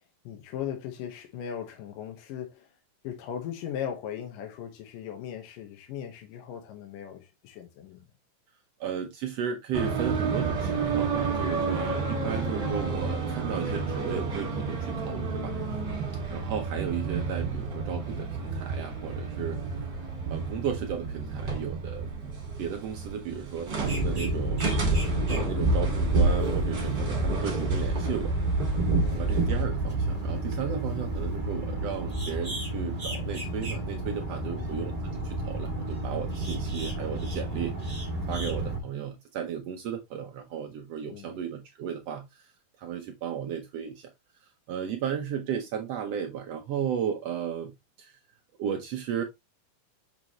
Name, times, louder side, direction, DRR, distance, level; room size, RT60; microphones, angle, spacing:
voice 1, 0.2-2.7 3.0-8.0 11.4-11.6 15.8-16.0 29.0-29.2 34.4-34.8 41.1-41.4, left 9 dB, 75° left, 2.6 m, -38 dB
voice 2, 8.8-15.5 16.3-20.0 20.3-22.1 22.6-28.4 29.1-42.5 42.8-44.1 44.4-47.7 48.0-48.2 48.6-49.2, right 8 dB, 80° right, 1.4 m, -35 dB
sound 1, 9.7-29.6, right 4 dB, 35° right, 2.2 m, -32 dB
sound 2, 23.8-38.8, right 1 dB, 15° right, 1.5 m, -29 dB
6.5 x 5.1 x 2.9 m
omnidirectional pair, 3.9 m